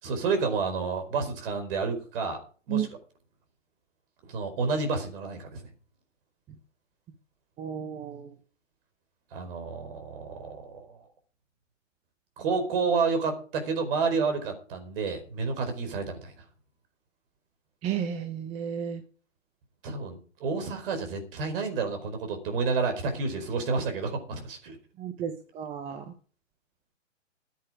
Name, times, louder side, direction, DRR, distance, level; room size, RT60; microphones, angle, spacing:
voice 1, 0.0-2.4 2.7-2.9 4.3-5.6 9.3-11.1 12.4-16.3 19.8-24.8, right 4 dB, 45° right, 5 dB, 4.9 m, -30 dB
voice 2, 7.6-8.3 17.8-19.0 25.0-26.0, right 8 dB, 15° right, 8 dB, 0.9 m, -32 dB
14.5 x 9.5 x 5.0 m, 0.42 s
hypercardioid pair, 135°, 38 cm